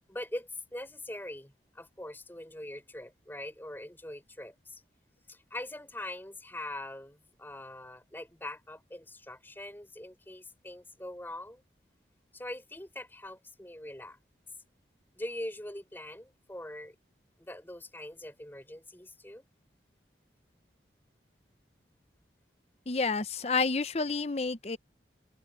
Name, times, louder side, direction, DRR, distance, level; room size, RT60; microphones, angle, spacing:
voice 1, 0.1-4.8 5.3-11.6 12.3-14.2 15.2-17.0 17.4-19.4, left 1 dB, 10° left, 3.6 m, -42 dB
voice 2, 22.9-24.8, left 4 dB, 35° left, 0.7 m, -29 dB
open air
head